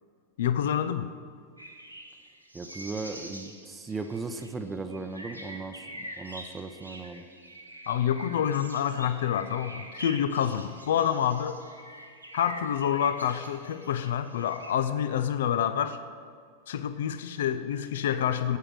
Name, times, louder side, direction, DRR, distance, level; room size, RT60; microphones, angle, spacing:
voice 1, 0.4-1.1 7.9-11.6 12.3-16.0 16.7-18.6, left 9 dB, 60° left, 12 dB, 0.6 m, -27 dB
sound 1, 1.6-14.7, right 1 dB, 90° right, 1.2 m, -45 dB
voice 2, 2.5-5.8 6.2-7.2, right 3 dB, 15° right, 7 dB, 0.7 m, -37 dB
16.0 x 8.7 x 4.8 m, 2.1 s
figure-of-eight pair, 90°, 0 cm